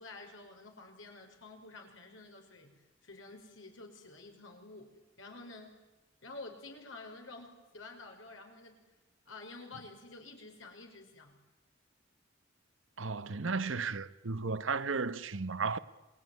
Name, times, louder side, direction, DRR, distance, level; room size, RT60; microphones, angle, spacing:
voice 1, 0.0-2.7 3.0-5.8 6.2-8.8 9.3-11.3, left 3 dB, 85° left, 5.7 m, -50 dB
voice 2, 13.0-15.8, right 4 dB, 80° right, 1.0 m, -34 dB
28.0 x 21.5 x 9.6 m
head